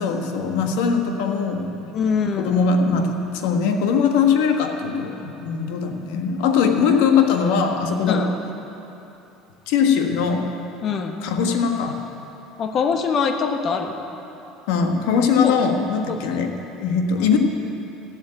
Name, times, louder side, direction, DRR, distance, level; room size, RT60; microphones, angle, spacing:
voice 1, 0.0-1.9 2.4-8.3 9.7-10.5 11.2-12.0 14.7-16.5 16.8-17.4, left 6 dB, 80° left, 4 dB, 1.4 m, -21 dB
voice 2, 1.9-2.6 8.1-8.3 10.8-11.2 12.6-14.0 15.4-15.5 16.1-16.2, left 6 dB, 45° left, 5 dB, 1.3 m, -23 dB
13.5 x 8.0 x 9.1 m, 2.9 s
supercardioid pair, 115°, 0 cm